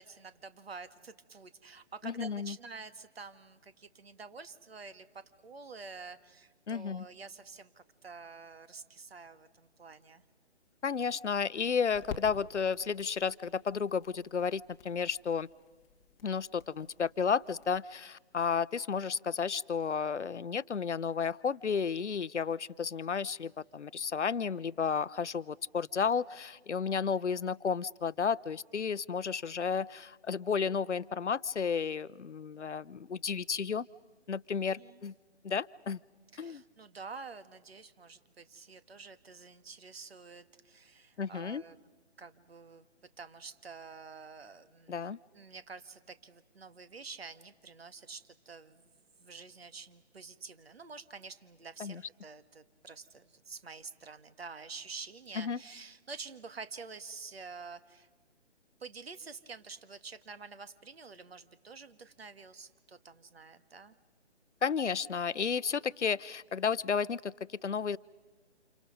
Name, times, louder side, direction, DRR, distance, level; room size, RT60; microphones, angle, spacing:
voice 1, 0.0-10.2 34.8-35.0 36.3-41.8 42.2-42.9 43.2-45.0 45.3-48.9 49.2-58.1 58.8-64.0, right 4 dB, 60° right, 12 dB, 1.6 m, -48 dB
voice 2, 2.0-2.6 6.7-7.1 10.8-15.5 16.2-33.8 34.3-35.1 35.4-36.0 36.4-36.6 41.2-41.6 44.9-45.2 51.8-52.0 55.4-55.6 64.6-68.0, left 6 dB, 80° left, 19 dB, 0.7 m, -32 dB
sound 1, 9.9-17.8, left 6 dB, 15° left, 1.1 m, -51 dB
29.5 x 28.0 x 5.2 m, 1.4 s
figure-of-eight pair, 145°, 34 cm